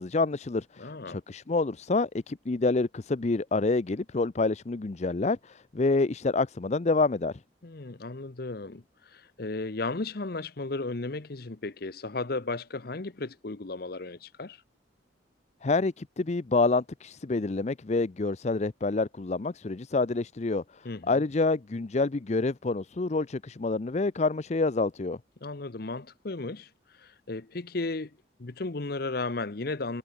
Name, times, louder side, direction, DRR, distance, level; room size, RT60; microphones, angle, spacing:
voice 1, 0.0-7.4 15.6-25.2, left 3 dB, 35° left, 0.5 m, -27 dB
voice 2, 0.8-1.2 7.6-14.6 20.8-21.2 25.4-30.0, left 3 dB, 55° left, 0.9 m, -35 dB
head